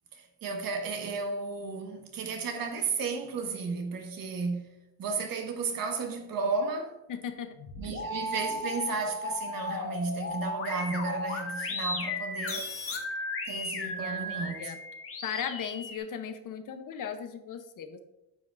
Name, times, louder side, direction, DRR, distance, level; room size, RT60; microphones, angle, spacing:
voice 1, 0.1-7.0 7.8-12.7 13.4-14.6, right 4 dB, 50° right, 1.4 m, -33 dB
voice 2, 7.1-7.5 7.8-7.9 13.1-13.2 13.8-14.8 15.2-18.0, left 8 dB, 45° left, 0.8 m, -37 dB
sound 1, 7.5-16.0, left 2 dB, 30° left, 1.4 m, -35 dB
9.6 x 7.1 x 2.5 m
cardioid pair, 125°, 43 cm